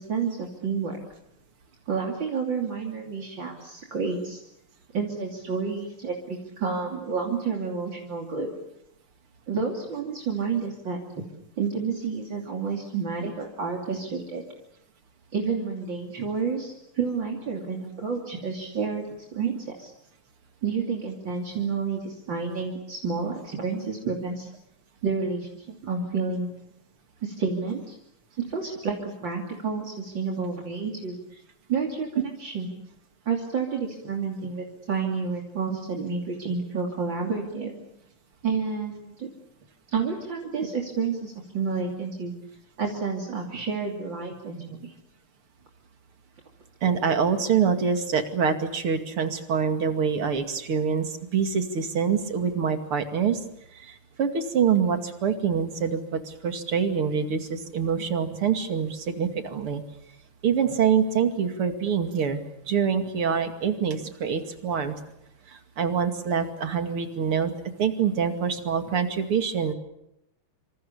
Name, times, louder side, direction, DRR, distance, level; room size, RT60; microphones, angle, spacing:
voice 1, 0.1-1.0 1.9-4.4 4.9-8.5 9.5-11.2 11.6-14.4 15.3-19.9 20.6-24.5 25.0-26.5 27.2-28.0 28.5-31.4 31.7-32.7 33.3-37.7 38.4-39.3 39.9-42.3 42.8-44.9, right 5 dB, 60° right, 1 dB, 3.6 m, -30 dB
voice 2, 46.8-53.4 53.7-59.8 60.4-62.4 62.7-64.9 65.5-69.7, right 7 dB, 90° right, 7 dB, 3.3 m, -25 dB
27.0 x 26.5 x 7.0 m, 0.81 s
omnidirectional pair, 2.4 m